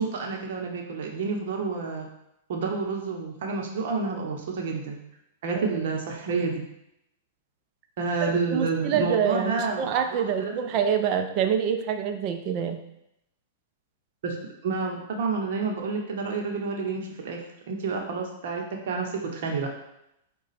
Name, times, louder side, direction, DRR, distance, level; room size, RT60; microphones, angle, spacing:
voice 1, 0.0-2.1 2.5-5.0 5.4-6.5 8.0-10.5 14.2-14.4 14.6-17.4 17.7-19.7, right 4 dB, 65° right, 1 dB, 0.8 m, -29 dB
voice 2, 8.2-12.8, right 8 dB, 45° right, 6 dB, 0.5 m, -26 dB
4.9 x 2.3 x 4.1 m, 0.82 s
hypercardioid pair, 120°, 0 cm